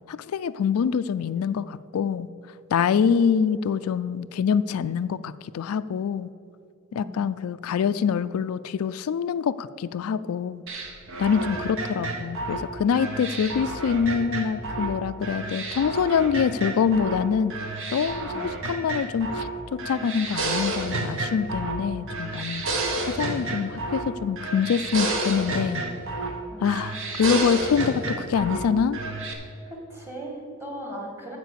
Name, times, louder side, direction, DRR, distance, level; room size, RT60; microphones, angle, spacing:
voice 1, 0.1-2.3 2.7-6.3 6.9-10.6 11.2-17.5 17.9-22.6 23.0-25.9 26.6-29.0, left 7 dB, 90° left, 14 dB, 0.3 m, -25 dB
voice 2, 6.9-7.3 18.3-18.5 26.5-26.8 27.2-27.3 29.7-31.4, right 1 dB, 10° right, 0 dB, 2.0 m, -38 dB
sound 1, 10.7-14.9 15.2-17.2 17.5-19.5 19.8-21.8 22.1-24.1 24.4-26.4 26.6-28.6 28.9-29.3, right 2 dB, 65° right, 1.3 m, -30 dB
14.5 x 4.8 x 6.8 m, 2.6 s
head